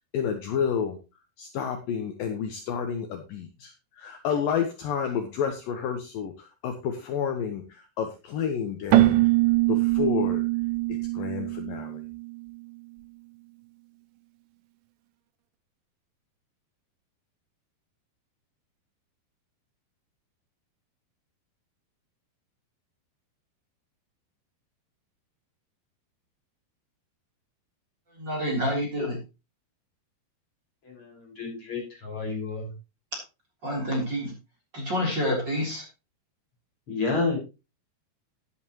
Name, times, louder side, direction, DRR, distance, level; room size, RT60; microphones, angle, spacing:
voice 1, 0.1-1.0 1.4-9.2 9.7-10.5 10.9-12.0, left 7 dB, 70° left, 5 dB, 2.6 m, -30 dB
Keyboard (musical), 8.9-12.5, right 18 dB, 75° right, 1.8 m, -23 dB
voice 2, 28.1-29.2 33.6-34.3 34.7-35.8, equal, 30° right, -1 dB, 3.9 m, -28 dB
voice 3, 30.9-32.7 36.9-37.4, left 3 dB, 30° left, -1 dB, 6.0 m, -30 dB
13.0 x 10.5 x 3.0 m, 0.28 s
omnidirectional pair, 4.6 m